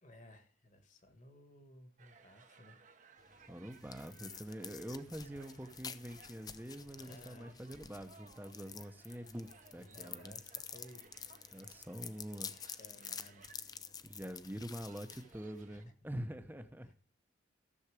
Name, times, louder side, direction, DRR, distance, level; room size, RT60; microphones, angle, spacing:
voice 1, 0.0-2.9 7.0-7.6 9.7-11.2 12.4-13.5 15.7-15.9 16.8-16.9, left 1 dB, 40° left, 8 dB, 1.5 m, -58 dB
sound 1, 2.0-15.8, right 5 dB, 40° right, 0.9 m, -63 dB
sound 2, 3.2-15.9, left 7 dB, 20° left, 0.5 m, -50 dB
voice 2, 3.5-10.3 11.5-12.5 14.0-16.9, equal, 10° right, 9 dB, 0.8 m, -45 dB
13.5 x 7.2 x 4.9 m, 0.37 s
head